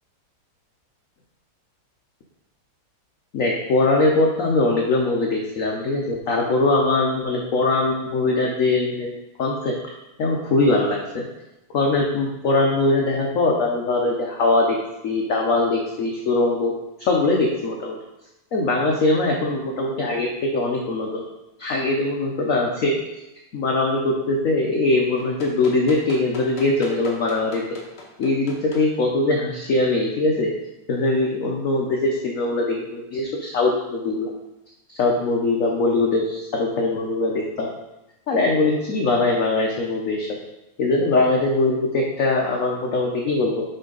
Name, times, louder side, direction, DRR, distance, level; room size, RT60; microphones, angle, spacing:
voice 1, 3.3-9.1 9.4-9.7 10.2-11.3 11.7-14.8 15.0-16.7 17.0-18.0 18.5-21.2 21.6-23.0 23.5-27.6 28.2-30.5 30.9-34.3 34.9-37.7 38.3-40.3 40.8-43.6, left 2 dB, 60° left, 0 dB, 0.8 m, -21 dB
sound 1, 25.2-28.9 29.8-29.9, left 2 dB, 35° left, 1.2 m, -40 dB
6.6 x 5.5 x 3.9 m, 0.95 s
omnidirectional pair, 2.3 m